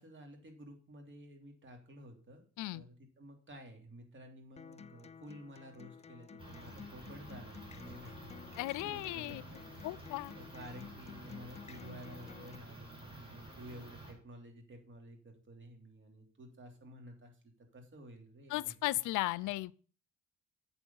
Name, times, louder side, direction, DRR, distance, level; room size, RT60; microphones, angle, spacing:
voice 1, 0.0-2.4 2.7-8.3 8.8-9.4 9.7-10.0 10.3-18.7, equal, 40° right, 3.1 m, -52 dB
Acoustic guitar, 4.6-12.5, left 6 dB, 20° left, 0.4 m, -53 dB
sound 1, 6.4-14.1, right 1 dB, 20° right, 4.9 m, -51 dB
voice 2, 8.6-9.4 9.8-10.3 18.5-19.7, left 18 dB, 90° left, 0.5 m, -36 dB
8.1 x 7.1 x 5.5 m
cardioid pair, 90°, 30 cm